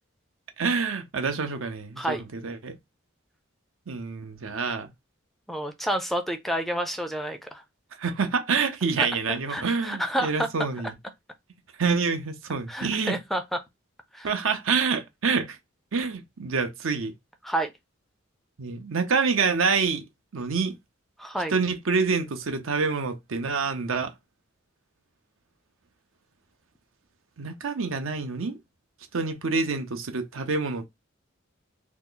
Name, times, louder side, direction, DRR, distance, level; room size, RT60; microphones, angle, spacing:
voice 1, 0.6-2.8 3.9-4.9 8.0-10.9 11.8-13.2 14.2-15.6 15.9-17.1 18.6-20.0 20.3-20.8 21.5-24.1 27.4-28.6 29.1-30.9, right 5 dB, 80° right, 0.7 m, -27 dB
voice 2, 5.5-7.6 9.0-10.5 12.7-13.6 14.1-14.3 17.4-17.7 21.2-21.5, right 1 dB, ahead, 0.3 m, -29 dB
2.9 x 2.3 x 3.7 m
head